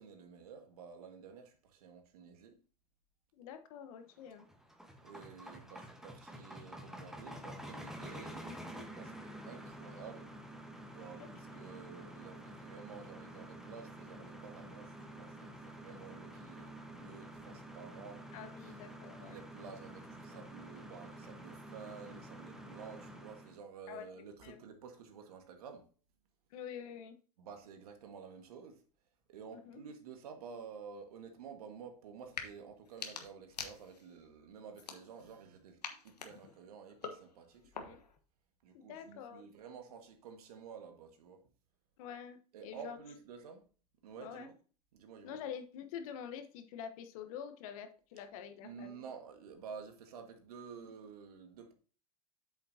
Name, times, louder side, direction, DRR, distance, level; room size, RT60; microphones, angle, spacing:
voice 1, 0.0-2.6 5.0-10.3 10.8-18.3 19.2-25.9 27.4-28.8 29.3-38.0 38.6-41.4 42.5-43.6 44.0-44.6 44.9-45.4 48.6-51.7, right 6 dB, 70° right, 1.8 m, -51 dB
voice 2, 3.3-4.5 8.5-8.9 11.2-11.3 11.6-11.7 18.3-19.4 23.9-24.6 26.5-27.2 29.5-29.8 36.3-36.4 37.8-38.0 38.7-39.4 42.0-43.0 44.2-44.5 45.2-49.0, left 8 dB, 60° left, 1.2 m, -47 dB
sound 1, 4.2-23.6, right 1 dB, ahead, 1.3 m, -49 dB
sound 2, 32.2-32.5 32.9-34.2 34.7-35.4 35.8-38.2, left 5 dB, 85° left, 1.4 m, -46 dB
8.4 x 7.7 x 2.8 m
hypercardioid pair, 95°, 20 cm